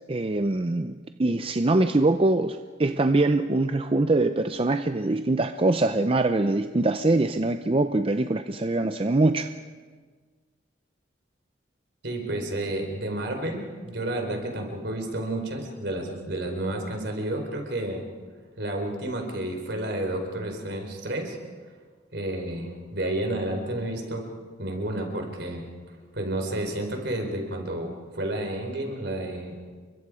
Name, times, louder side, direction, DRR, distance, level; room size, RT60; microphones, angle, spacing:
voice 1, 0.1-9.5, right 2 dB, 30° right, 8 dB, 0.6 m, -23 dB
voice 2, 12.0-18.0 18.6-21.4 22.1-24.2 24.6-25.6 26.1-29.6, right 1 dB, 65° right, 3 dB, 4.4 m, -31 dB
29.5 x 23.5 x 5.0 m, 1.5 s
head